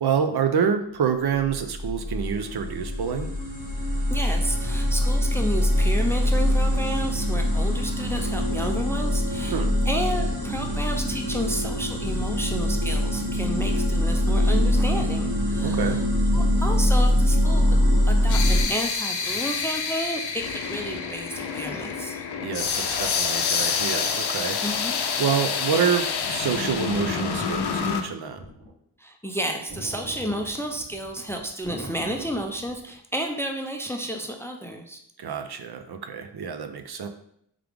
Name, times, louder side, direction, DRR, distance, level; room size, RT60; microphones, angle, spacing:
voice 1, 0.0-3.3 9.5-9.7 15.6-16.0 22.4-24.6 25.2-28.4 35.2-37.1, right 7 dB, 65° right, 7 dB, 0.5 m, -27 dB
sound 1, 1.4-18.6, left 1 dB, 45° right, 1.6 m, -23 dB
voice 2, 4.1-16.0 16.3-17.8 18.1-22.2 24.6-25.0 29.0-35.0, right 1 dB, 5° left, 3 dB, 0.4 m, -31 dB
sound 2, 17.4-28.0, left 6 dB, 70° left, 0.6 m, -28 dB
sound 3, 26.9-28.7 29.7-33.0, right 1 dB, 90° right, 1.4 m, -41 dB
3.6 x 3.3 x 3.4 m, 0.69 s
wide cardioid pair, 80°, 42 cm